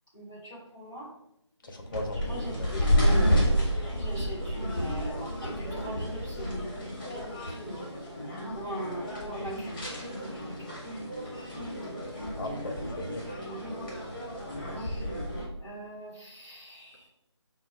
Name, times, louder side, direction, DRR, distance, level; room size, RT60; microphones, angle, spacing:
voice 1, 0.1-1.1 2.2-3.3 3.9-5.1 5.4-7.9 8.5-9.8 10.1-10.8 14.7-15.1 15.6-17.1, equal, 5° right, -10 dB, 0.4 m, -41 dB
voice 2, 1.6-2.8 12.4-13.2, left 1 dB, 45° left, 3 dB, 0.6 m, -37 dB
sound 1, 1.8-15.4, equal, 15° left, 1.0 m, -30 dB
5.1 x 2.2 x 3.1 m, 0.80 s
figure-of-eight pair, 160°, 15 cm